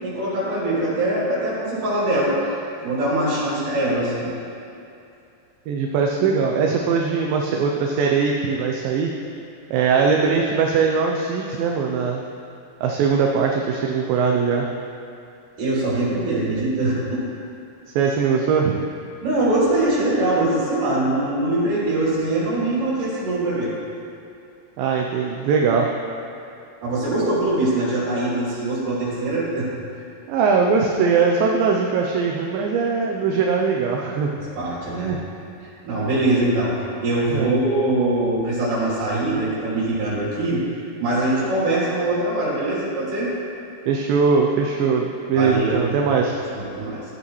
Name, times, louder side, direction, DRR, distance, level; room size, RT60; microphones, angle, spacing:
voice 1, 0.0-2.5 2.8-4.4 15.6-17.2 19.2-23.7 26.8-29.7 34.6-35.2 35.8-40.6 41.0-43.3 45.4-45.9 46.5-47.0, right 1 dB, 60° right, -8 dB, 4.5 m, -22 dB
voice 2, 5.7-9.1 9.7-12.2 12.8-14.7 18.0-18.8 24.8-25.9 30.3-34.3 35.0-35.2 37.3-37.5 43.9-46.4, right 5 dB, 80° right, 1 dB, 2.1 m, -21 dB
15.0 x 8.6 x 3.1 m, 2.6 s
omnidirectional pair, 4.6 m